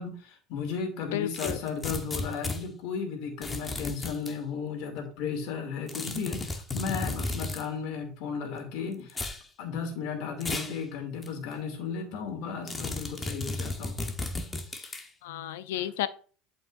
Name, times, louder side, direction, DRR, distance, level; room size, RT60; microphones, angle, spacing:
voice 1, 0.0-9.3 9.6-14.0 14.7-14.9, left 6 dB, 65° left, 4 dB, 2.6 m, -35 dB
voice 2, 1.1-1.6 15.2-16.1, left 12 dB, 85° left, 14 dB, 0.5 m, -32 dB
sound 1, 1.3-2.6 3.4-4.3 5.9-7.7 9.1-9.4 10.4-10.8 11.2-11.3 12.7-15.1, left 2 dB, 20° left, 1.1 m, -34 dB
11.0 x 5.3 x 2.6 m, 0.41 s
supercardioid pair, 110°, 0 cm